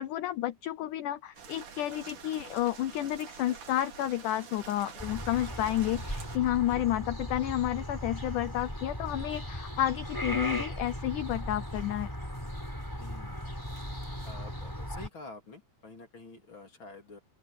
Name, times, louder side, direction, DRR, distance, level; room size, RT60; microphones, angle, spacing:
voice 1, 0.0-12.1, left 13 dB, 85° left, 1.8 m, -31 dB
sound 1, 1.3-6.4, right 6 dB, 55° right, 4.0 m, -47 dB
sound 2, 5.0-15.1, equal, 5° left, 6.4 m, -37 dB
voice 2, 13.0-13.5 14.2-17.2, left 3 dB, 30° left, 3.8 m, -48 dB
open air
omnidirectional pair, 4.6 m